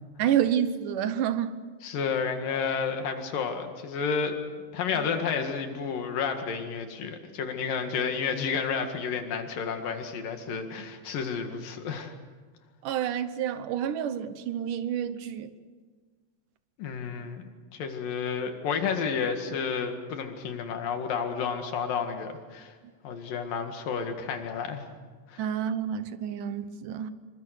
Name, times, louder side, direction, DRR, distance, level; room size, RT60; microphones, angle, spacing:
voice 1, 0.2-1.6 12.8-15.5 25.4-27.1, right 9 dB, 75° right, 2.5 m, -29 dB
voice 2, 1.8-4.4 4.7-12.1 16.8-17.4 17.7-22.8 23.0-24.9 25.3-25.5, left 6 dB, 80° left, 3.7 m, -31 dB
27.0 x 23.5 x 6.7 m
omnidirectional pair, 3.9 m